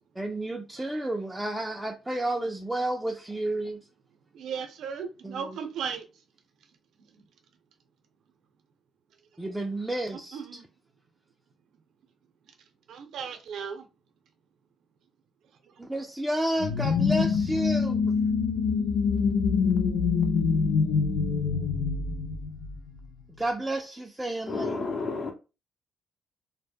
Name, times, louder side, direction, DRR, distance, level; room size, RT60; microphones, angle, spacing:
voice 1, 0.2-3.8 5.2-5.6 9.4-10.6 15.8-18.0 23.4-24.9, right 1 dB, 10° right, 0.4 m, -31 dB
voice 2, 4.3-6.1 10.3-10.7 12.9-13.9, right 7 dB, 75° right, 0.6 m, -36 dB
sound 1, 16.6-23.1, left 5 dB, 85° left, 0.3 m, -25 dB
voice 3, 24.5-25.3, left 4 dB, 50° left, 0.7 m, -31 dB
2.1 x 2.0 x 3.3 m
cardioid pair, 90°, 0 cm